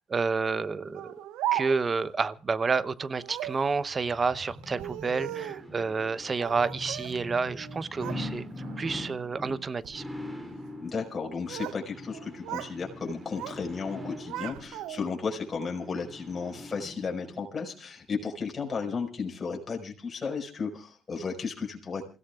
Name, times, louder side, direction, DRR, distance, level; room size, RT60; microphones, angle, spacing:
voice 1, 0.1-1.1 1.5-8.5 8.8-10.0, right 4 dB, 35° right, 17 dB, 0.9 m, -29 dB
Speech, 0.9-2.0 3.2-3.6 4.6-5.7 6.4-7.2 7.5-8.2 8.6-9.0 9.7-10.0 11.1-11.8 12.1-12.8 13.0-13.6 14.0-15.2, right 14 dB, 80° right, 0.7 m, -37 dB
sound 1, 3.5-17.4 17.8-17.9, left 1 dB, 10° right, 3.4 m, -42 dB
voice 2, 10.8-22.1, left 5 dB, 35° left, 1 dB, 5.3 m, -34 dB
28.0 x 16.5 x 2.5 m, 0.34 s
supercardioid pair, 70°, 0 cm